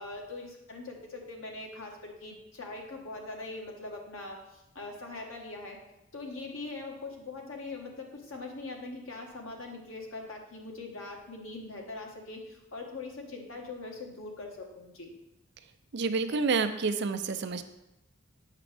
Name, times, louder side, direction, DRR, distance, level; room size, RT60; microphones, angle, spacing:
voice 1, 0.0-5.8 6.1-15.1, left 3 dB, 90° left, 1 dB, 1.3 m, -42 dB
voice 2, 15.9-17.6, right 4 dB, 55° right, 9 dB, 0.5 m, -28 dB
7.5 x 6.0 x 3.3 m, 0.88 s
head